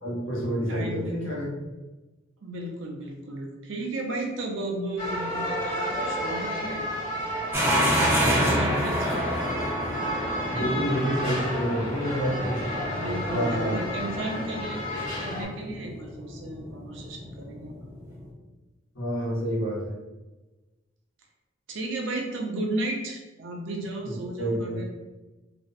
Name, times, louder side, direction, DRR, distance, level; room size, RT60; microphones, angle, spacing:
voice 1, 0.0-1.5 8.1-8.7 10.5-12.7 13.3-13.8 18.9-19.9 24.0-24.8, equal, 80° left, -6 dB, 1.0 m, -29 dB
voice 2, 0.7-1.1 2.4-6.8 7.9-9.2 10.5-10.8 12.8-17.7 21.7-24.9, right 2 dB, 70° right, 2 dB, 0.5 m, -34 dB
sound 1, 5.0-15.4, equal, 40° left, 1.0 m, -32 dB
sound 2, 7.5-18.3, equal, 10° right, 0.4 m, -29 dB
2.4 x 2.0 x 2.5 m, 1.1 s
head